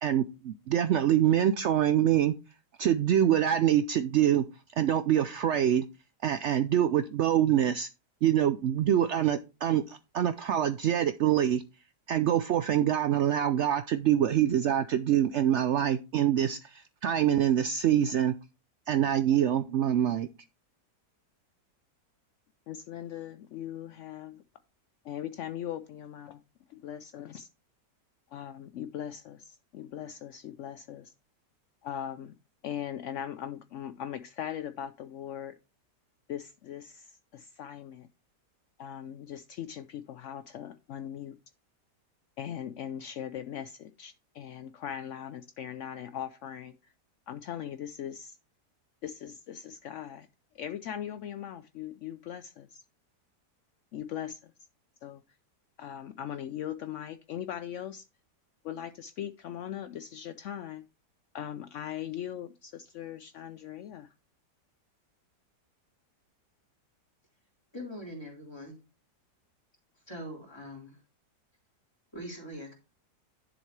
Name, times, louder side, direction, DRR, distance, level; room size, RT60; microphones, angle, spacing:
voice 1, 0.0-2.3 2.8-4.4 4.8-5.8 6.2-7.9 8.2-11.6 12.1-18.3 18.9-20.3, right 10 dB, 85° right, 0.6 m, -25 dB
voice 2, 22.7-24.4 25.0-26.4 26.7-27.5 28.3-31.1 31.8-32.3 32.6-35.6 36.3-38.1 38.8-41.4 42.4-46.7 47.3-48.4 49.0-50.3 50.5-52.8 53.9-54.4 55.0-55.2 55.8-58.0 58.6-60.8 61.3-64.1, left 10 dB, 75° left, 0.7 m, -39 dB
voice 3, 67.7-68.8 70.1-71.0 72.1-72.7, equal, 15° left, 3.3 m, -42 dB
10.5 x 7.1 x 3.2 m
omnidirectional pair, 1.8 m